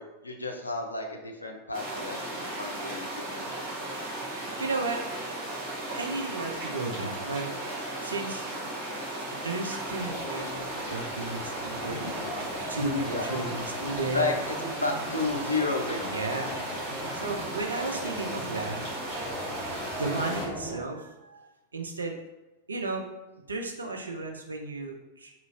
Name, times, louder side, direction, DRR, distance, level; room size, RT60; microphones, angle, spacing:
voice 1, 0.0-3.7 12.8-13.3 14.1-16.1, left 3 dB, 80° left, 3 dB, 0.4 m, -32 dB
sound 1, 1.7-20.4, right 1 dB, 45° right, 1.2 m, -36 dB
voice 2, 4.2-5.0 5.9-7.5 8.0-8.5 9.3-14.2 16.0-16.5 17.1-18.8 19.8-22.1 22.7-23.0 23.5-25.3, right 3 dB, 75° right, 3 dB, 0.4 m, -34 dB
sound 2, 9.8-20.8, left 1 dB, 5° left, 0.6 m, -39 dB
2.8 x 2.4 x 2.6 m, 1.0 s
figure-of-eight pair, 90°, 0 cm